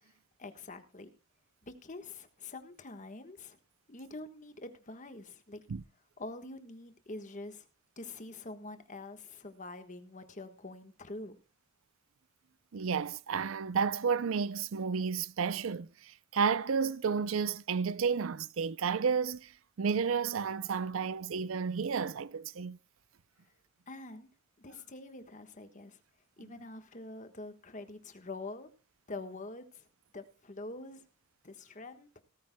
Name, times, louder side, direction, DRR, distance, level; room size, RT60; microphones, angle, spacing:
voice 1, 0.4-1.1 1.6-3.6 3.9-5.6 6.2-7.7 8.0-11.4 23.9-24.3 24.6-26.0 26.4-28.7 29.1-29.9 30.1-31.0 31.4-32.1, left 2 dB, 35° left, 1.3 m, -45 dB
voice 2, 12.7-19.5 19.8-22.8, right 6 dB, 75° right, 0.5 m, -31 dB
18.0 x 13.5 x 2.2 m
head